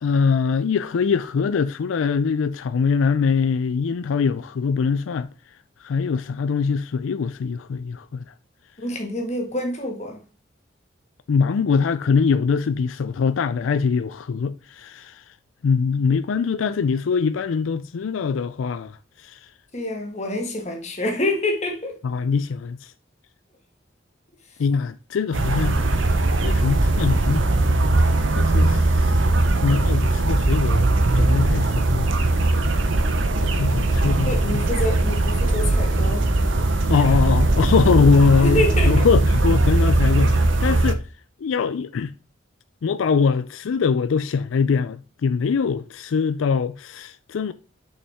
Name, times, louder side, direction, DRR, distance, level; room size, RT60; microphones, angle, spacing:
voice 1, 0.0-5.3 5.8-8.2 11.3-15.2 15.6-19.4 22.0-22.9 24.6-25.8 26.1-27.5 28.3-29.2 29.6-30.8 31.1-32.1 33.4-34.6 36.9-41.0 41.4-42.1 42.8-47.5, left 5 dB, 85° left, 0.4 m, -22 dB
voice 2, 8.8-10.2 19.7-22.0 34.2-36.3 38.4-39.0, left 1 dB, 35° left, 1.7 m, -26 dB
sound 1, 25.3-40.9, right 2 dB, 75° right, 0.8 m, -19 dB
7.0 x 5.5 x 3.5 m
head